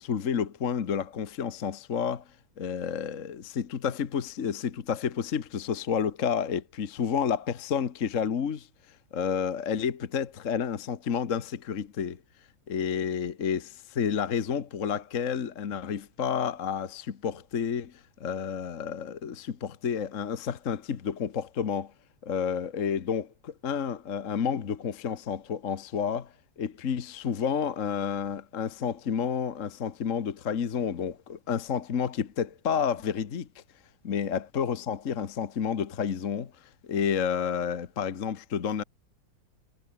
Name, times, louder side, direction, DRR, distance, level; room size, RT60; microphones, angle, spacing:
voice 1, 0.0-2.2 2.6-8.7 9.1-12.2 12.7-17.9 18.2-21.9 22.2-33.6 34.0-36.5 36.8-38.8, left 7 dB, 45° left, 1.5 m, -30 dB
omnidirectional pair, 2.0 m